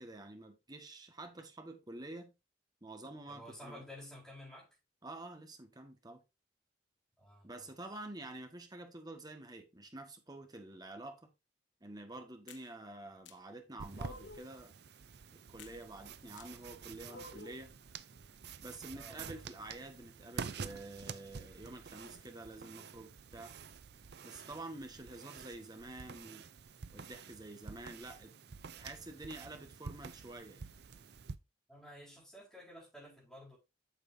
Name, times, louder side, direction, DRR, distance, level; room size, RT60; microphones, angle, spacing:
voice 1, 0.0-2.3 2.8-3.8 5.0-6.2 7.4-11.3 11.8-14.7 15.3-17.8 18.6-23.5 24.2-26.5 26.9-28.3 28.8-30.7, right 2 dB, 20° right, 1.6 m, -48 dB
voice 2, 3.3-4.8 7.2-7.7 18.9-19.4 31.7-33.6, equal, 5° left, 4.8 m, -52 dB
sound 1, 12.5-12.7 13.3-13.4 14.0-14.5 15.6-15.8 16.4-16.5 17.1-17.6, left 3 dB, 75° left, 1.0 m, -51 dB
sound 2, 13.8-31.4, right 5 dB, 60° right, 0.6 m, -48 dB
8.5 x 6.8 x 2.7 m
head